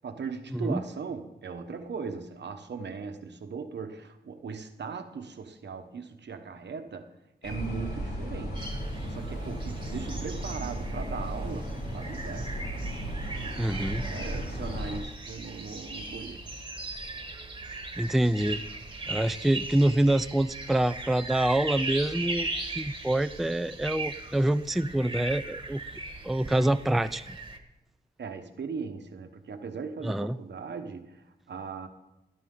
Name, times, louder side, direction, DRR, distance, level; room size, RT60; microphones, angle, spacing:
voice 1, 0.0-7.1 7.4-8.7 9.1-12.5 14.0-16.4 28.2-31.9, right 5 dB, 80° right, 7 dB, 1.2 m, -38 dB
sound 1, 7.4-15.0, right 1 dB, 60° left, 4.3 m, -35 dB
sound 2, 8.5-27.6, right 2 dB, 25° right, 1.5 m, -39 dB
voice 2, 13.6-14.0 18.0-18.6 19.1-22.5 22.8-25.8 26.2-27.4 30.0-30.4, right 1 dB, ahead, 12 dB, 0.4 m, -26 dB
17.5 x 11.0 x 3.8 m, 0.95 s
wide cardioid pair, 75°, 18 cm